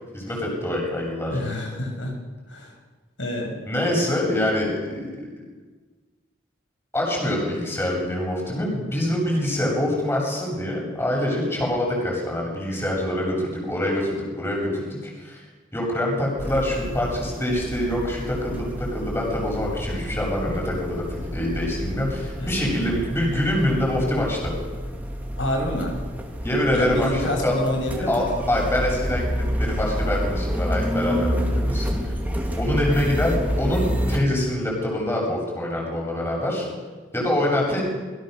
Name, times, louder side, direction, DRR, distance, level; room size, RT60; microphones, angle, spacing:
voice 1, 0.1-1.5 3.7-5.1 6.9-15.4 15.7-24.5 26.4-27.6 28.1-31.9 32.6-36.7 37.1-37.8, left 1 dB, 15° left, -2 dB, 7.7 m, -25 dB
voice 2, 1.3-2.1 2.5-2.7 3.2-3.6 22.4-23.0 25.4-26.0 26.7-28.4, left 1 dB, 75° left, 1 dB, 7.3 m, -28 dB
sound 1, 16.4-34.2, equal, 10° right, 2.9 m, -28 dB
28.0 x 22.5 x 6.8 m, 1.3 s
head